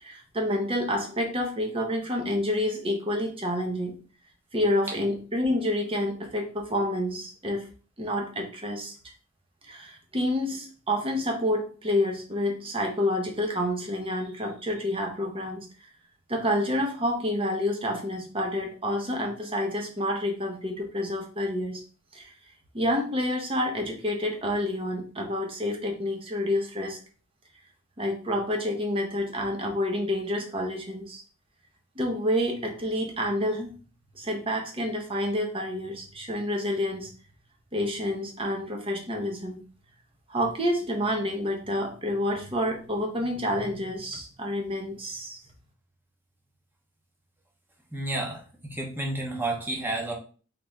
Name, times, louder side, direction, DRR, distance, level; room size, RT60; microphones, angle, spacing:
voice 1, 0.0-4.0 4.5-7.7 8.0-8.9 9.6-15.7 16.3-21.8 22.1-22.3 22.7-27.0 28.0-31.2 32.0-33.7 34.1-37.1 37.7-39.6 40.3-45.4, left 1 dB, 30° right, 2 dB, 1.0 m, -28 dB
voice 2, 47.9-50.1, right 2 dB, 10° right, -1 dB, 1.1 m, -31 dB
3.9 x 3.4 x 3.5 m, 0.39 s
head